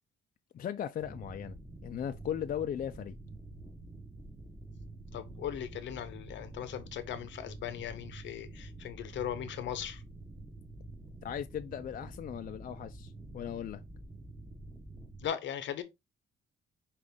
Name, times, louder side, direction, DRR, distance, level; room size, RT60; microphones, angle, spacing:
voice 1, 0.5-1.6 1.8-3.2 11.2-13.8, left 9 dB, 45° left, 0.4 m, -37 dB
sound 1, 1.0-15.3, right 2 dB, 10° right, 1.1 m, -48 dB
voice 2, 5.1-10.0 15.2-15.8, left 9 dB, 70° left, 0.8 m, -38 dB
5.0 x 2.5 x 3.5 m
cardioid pair, 90°, 20 cm